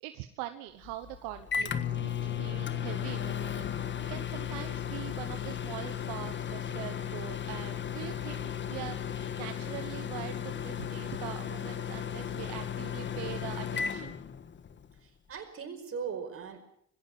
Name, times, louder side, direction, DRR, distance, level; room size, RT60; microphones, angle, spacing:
voice 1, 0.0-14.2, right 15 dB, 80° right, 9 dB, 1.2 m, -43 dB
Microwave oven, 0.8-14.9, left 8 dB, 40° left, 1.5 m, -35 dB
voice 2, 15.0-16.6, right 6 dB, 50° right, 7 dB, 5.1 m, -39 dB
21.0 x 16.5 x 7.6 m, 0.70 s
hypercardioid pair, 70°, 30 cm